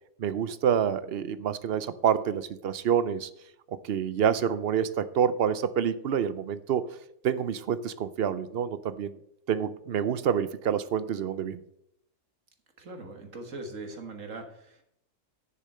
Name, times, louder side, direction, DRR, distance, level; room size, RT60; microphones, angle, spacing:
voice 1, 0.2-3.3 3.7-6.9 7.2-9.2 9.5-11.6, right 8 dB, 60° right, 14 dB, 0.8 m, -27 dB
voice 2, 12.8-14.8, right 2 dB, 80° right, 5 dB, 2.0 m, -41 dB
10.5 x 6.7 x 5.5 m, 0.73 s
omnidirectional pair, 1.3 m